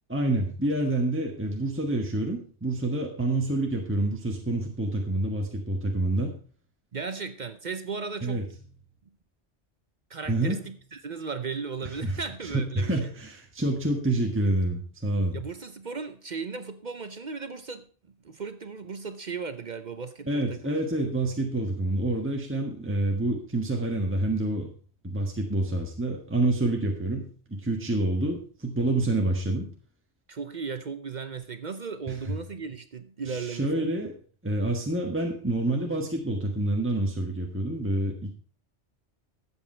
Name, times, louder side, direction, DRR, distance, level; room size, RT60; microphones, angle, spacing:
voice 1, 0.1-6.3 8.2-8.4 10.3-10.6 12.0-12.1 12.5-15.4 20.3-24.7 25.0-29.7 32.1-32.2 33.3-34.1 34.4-38.3, right 2 dB, 10° right, 1.4 m, -27 dB
voice 2, 6.9-8.5 10.1-13.1 15.3-17.9 18.2-20.8 30.3-33.9, right 5 dB, 45° right, 0.8 m, -36 dB
13.5 x 8.1 x 4.4 m
omnidirectional pair, 1.2 m